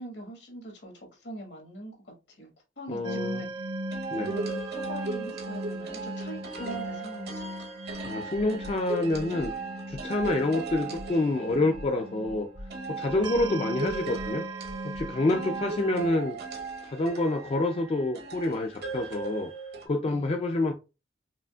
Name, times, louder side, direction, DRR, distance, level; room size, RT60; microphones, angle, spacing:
voice 1, 0.0-3.5 4.1-7.5 9.5-9.8 15.2-15.9 20.1-20.4, equal, 70° left, 1.5 m, -43 dB
voice 2, 2.9-3.4 4.1-4.3 8.1-9.5 9.9-12.5 12.9-14.4 14.8-16.4 16.8-19.5 19.9-20.7, left 2 dB, 35° left, 0.3 m, -27 dB
sound 1, 3.0-16.1, right 1 dB, 25° right, 0.5 m, -38 dB
sound 2, 3.9-12.1 12.7-19.9, right 4 dB, 60° right, 0.8 m, -38 dB
sound 3, 7.9-8.0 8.3-8.8 9.1-9.6 9.9-10.4 10.7-11.1 11.5-11.9 12.2-12.7 13.1-13.5 13.9-14.3 14.6-15.8, left 1 dB, 90° left, 1.6 m, -44 dB
4.9 x 2.7 x 2.3 m
head